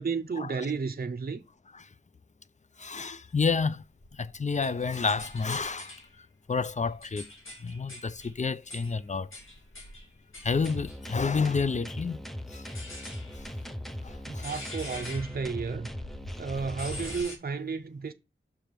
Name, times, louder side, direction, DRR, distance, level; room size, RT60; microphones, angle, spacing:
voice 1, 0.0-1.4 14.2-15.9 16.4-18.1, right 5 dB, 50° right, 0.6 m, -32 dB
voice 2, 2.8-3.8 4.1-6.0 6.5-7.3 7.6-9.3 10.4-12.2 12.5-12.7 13.4-13.5 14.0-14.5, left 5 dB, 35° left, 0.5 m, -30 dB
sound 1, 4.0-6.1 6.6-11.7 12.5-17.4, left 1 dB, 85° left, 2.3 m, -45 dB
sound 2, 10.7-17.2, equal, ahead, 0.7 m, -40 dB
6.1 x 3.4 x 6.0 m
wide cardioid pair, 45°, 20 cm